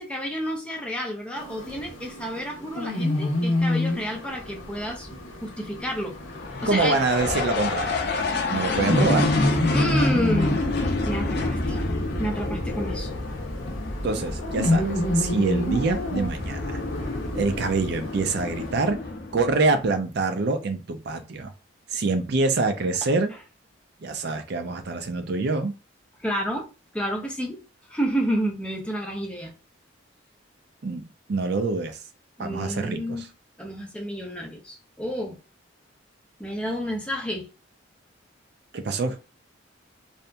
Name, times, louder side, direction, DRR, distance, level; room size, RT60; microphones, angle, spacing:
voice 1, 0.0-5.1 5.4-6.2 6.6-7.3 9.7-10.6 11.0-11.8 12.2-13.1 26.2-26.7 26.9-27.6 27.9-29.5 32.4-33.3 33.6-35.4 36.4-37.5, equal, 5° left, 0.4 m, -30 dB
sound 1, 1.4-18.9, left 1 dB, 85° left, 0.8 m, -29 dB
sound 2, 3.9-19.9, left 2 dB, 55° left, 0.5 m, -29 dB
voice 2, 6.7-8.0 8.5-9.3 14.0-16.8 17.3-19.0 19.3-21.5 21.9-23.3 24.0-25.7 30.8-31.0 31.3-32.0 32.4-33.3 38.7-39.2, right 3 dB, 55° right, 0.4 m, -25 dB
2.7 x 2.5 x 2.2 m
head